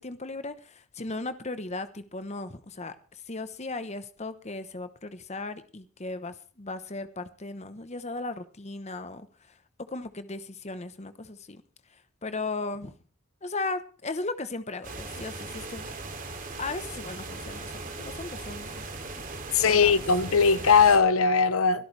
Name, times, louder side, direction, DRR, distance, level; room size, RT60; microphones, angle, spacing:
voice 1, 0.0-2.9 3.3-9.3 9.9-11.6 12.2-12.9 13.4-15.8 16.6-18.8 19.2-19.3 19.7-19.9, left 3 dB, 30° left, 1.0 m, -36 dB
sound 1, 14.8-21.0, right 3 dB, 40° right, 2.7 m, -38 dB
voice 2, 19.5-21.9, left 5 dB, 70° left, 0.9 m, -20 dB
22.5 x 12.5 x 3.3 m
head